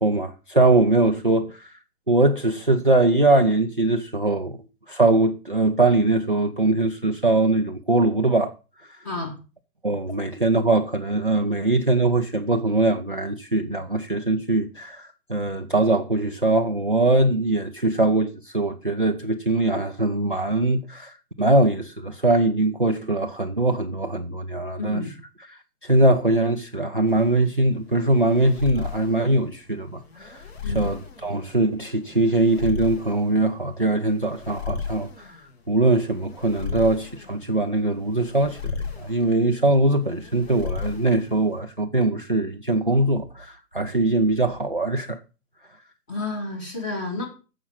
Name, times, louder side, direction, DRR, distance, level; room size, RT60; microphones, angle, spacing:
voice 1, 0.0-1.7 2.1-4.6 4.9-8.5 9.8-25.0 25.8-35.4 35.7-45.2, right 2 dB, 35° right, 0.5 m, -22 dB
voice 2, 24.8-25.1 30.6-30.8 46.1-47.3, left 2 dB, 10° left, 1.7 m, -30 dB
sound 1, 27.1-41.6, left 5 dB, 40° left, 2.6 m, -35 dB
15.5 x 6.1 x 5.6 m
hypercardioid pair, 180°, 50 cm